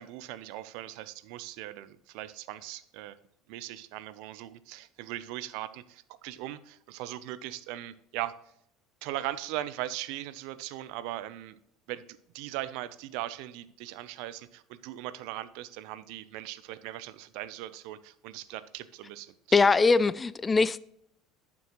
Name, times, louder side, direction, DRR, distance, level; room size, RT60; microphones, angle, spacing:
voice 1, 0.0-3.2 3.5-8.3 9.0-11.6 11.9-19.3 19.6-19.7, right 14 dB, 75° right, 0.6 m, -39 dB
voice 2, 19.5-20.8, left 4 dB, 20° left, 0.3 m, -22 dB
11.0 x 6.1 x 3.0 m
supercardioid pair, 105°, 0 cm